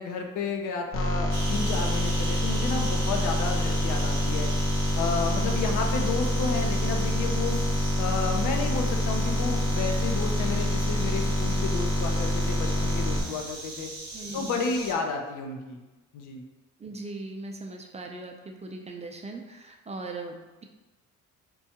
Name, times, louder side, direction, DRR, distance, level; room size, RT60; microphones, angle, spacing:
voice 1, 0.0-4.5 5.0-7.6 8.0-13.9 14.3-15.8 16.1-16.4, left 4 dB, 85° left, 3 dB, 0.6 m, -31 dB
sound 1, 0.9-13.2, left 1 dB, 45° left, 0.7 m, -26 dB
sound 2, 1.3-14.9, right 2 dB, 60° right, 1.0 m, -39 dB
voice 2, 14.1-14.7 16.8-20.6, right 2 dB, 20° right, 2 dB, 0.4 m, -39 dB
4.4 x 2.3 x 2.8 m, 1.1 s
cardioid pair, 90°, 30 cm